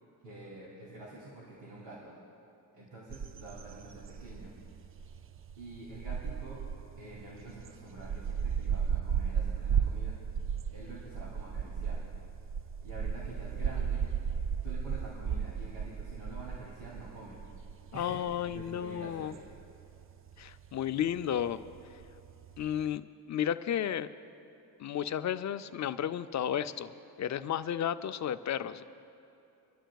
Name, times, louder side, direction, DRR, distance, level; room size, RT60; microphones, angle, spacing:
voice 1, 0.2-2.2 2.7-4.5 5.6-6.6 7.0-10.1 10.7-12.0 12.8-14.1 14.4-17.4 17.9-19.4, right 2 dB, 75° right, -5 dB, 2.9 m, -47 dB
sound 1, 3.1-22.9, right 7 dB, 30° right, 0.4 m, -35 dB
voice 2, 17.9-19.3 20.4-21.6 22.6-24.1 24.8-28.8, left 9 dB, 40° left, 11 dB, 0.5 m, -33 dB
27.0 x 11.5 x 2.3 m, 2.7 s
cardioid pair, 85°, 44 cm